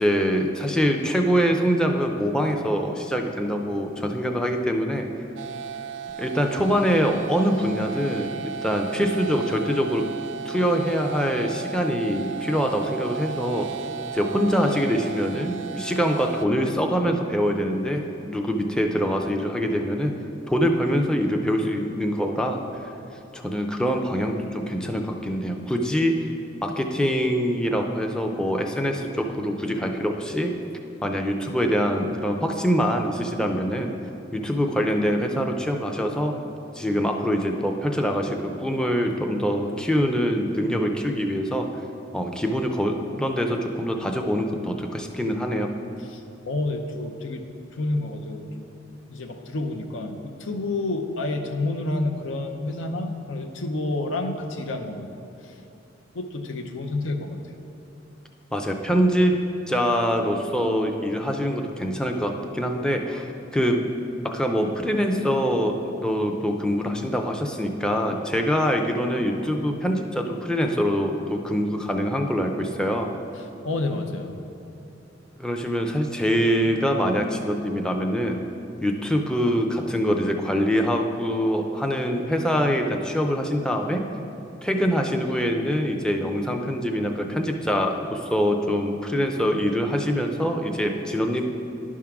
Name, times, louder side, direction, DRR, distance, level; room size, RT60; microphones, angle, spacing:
voice 1, 0.0-5.1 6.2-10.1 10.5-13.7 14.1-20.1 20.5-22.9 23.3-26.3 26.6-30.5 31.0-33.9 34.3-36.3 36.7-41.7 42.1-45.7 58.5-59.4 59.7-63.8 64.2-73.1 75.4-78.4 78.8-84.1 84.6-91.5, equal, 5° left, 3 dB, 0.4 m, -24 dB
sound 1, 5.4-16.5, right 6 dB, 70° right, 0.3 m, -35 dB
voice 2, 46.0-47.4 47.7-48.7 49.1-55.1 55.4-55.5 56.1-57.4 73.4-74.4, left 2 dB, 90° left, 5 dB, 0.6 m, -29 dB
10.5 x 3.6 x 5.8 m, 2.7 s
head